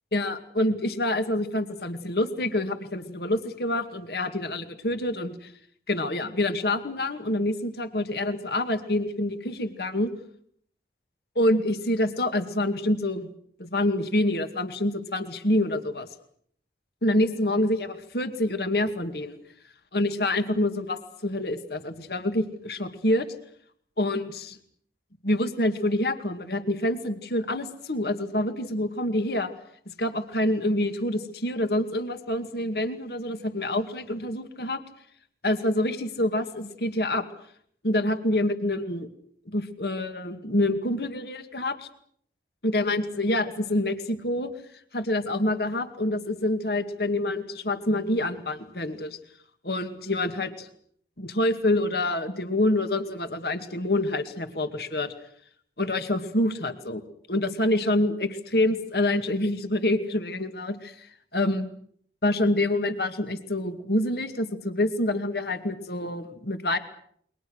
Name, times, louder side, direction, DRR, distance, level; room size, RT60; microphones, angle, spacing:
voice 1, 0.1-5.5 5.9-10.1 11.4-13.3 13.6-16.1 17.0-19.4 19.9-23.3 24.0-24.6 25.2-29.5 29.9-34.8 35.4-37.3 37.8-39.1 39.5-41.9 42.6-44.5 44.9-49.2 49.6-50.7 51.2-55.1 55.8-57.0 57.3-61.1 61.3-61.6 62.2-66.8, left 1 dB, 60° left, 8 dB, 2.2 m, -27 dB
29.0 x 23.0 x 6.4 m, 0.64 s
head